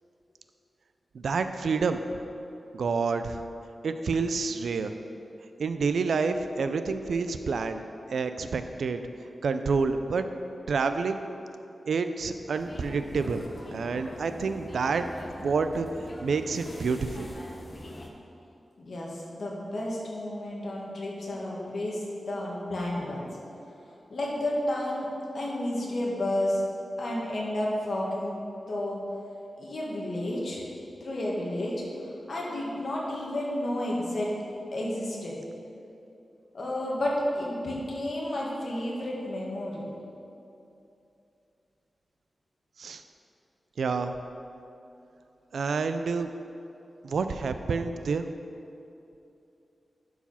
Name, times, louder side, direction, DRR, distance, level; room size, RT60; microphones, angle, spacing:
voice 1, 1.1-2.0 2.7-3.4 3.8-4.9 5.6-7.8 8.1-9.0 9.4-10.3 10.7-11.2 11.9-13.5 13.7-15.1 15.4-15.9 16.2-17.3 42.8-43.0 43.8-44.1 45.5-46.3 47.0-48.3, right 4 dB, 85° right, 9 dB, 0.4 m, -28 dB
sound 1, 12.5-18.1, left 1 dB, 25° left, 0.8 m, -43 dB
voice 2, 18.8-23.3 24.1-25.1 25.3-26.6 27.0-28.4 28.7-29.0 29.6-30.6 31.0-31.8 32.3-34.3 34.7-35.4 36.5-39.9, left 1 dB, 55° left, -4 dB, 1.8 m, -31 dB
11.5 x 4.8 x 5.6 m, 2.7 s
wide cardioid pair, 175°, 0 cm